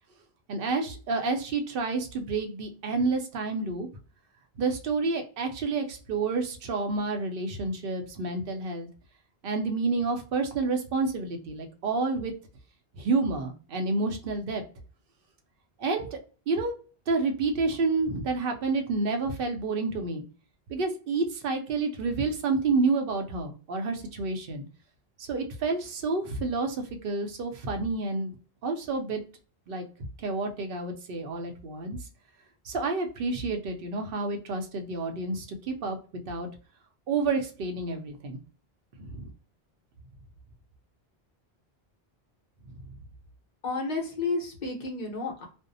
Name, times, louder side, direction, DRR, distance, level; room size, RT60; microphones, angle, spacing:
voice 1, 0.5-3.9 4.6-8.9 9.4-12.3 12.9-14.6 15.8-16.2 16.5-16.7 17.1-20.2 20.7-24.6 25.2-28.4 28.6-29.2 29.7-29.9 30.2-32.0 32.6-36.5 37.1-38.4 39.0-39.3 42.7-42.8, right 3 dB, 65° right, 5 dB, 0.8 m, -29 dB
voice 2, 43.6-45.5, left 3 dB, 45° left, -1 dB, 1.0 m, -31 dB
2.6 x 2.0 x 2.6 m, 0.38 s
omnidirectional pair, 1.1 m